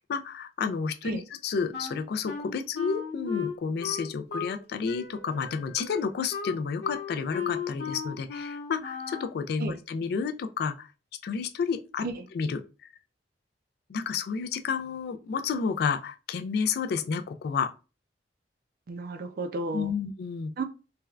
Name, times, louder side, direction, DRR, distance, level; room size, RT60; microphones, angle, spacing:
voice 1, 0.0-10.9 11.2-12.1 12.3-12.9 13.9-17.7 19.7-20.5, left 5 dB, 60° left, 0.3 m, -31 dB
Wind instrument woodwind instrument, 1.7-4.6 4.9-9.4, left 6 dB, 90° left, 0.9 m, -36 dB
voice 2, 18.9-19.9 20.6-20.7, right 2 dB, 55° right, 0.4 m, -33 dB
3.3 x 2.2 x 2.3 m
head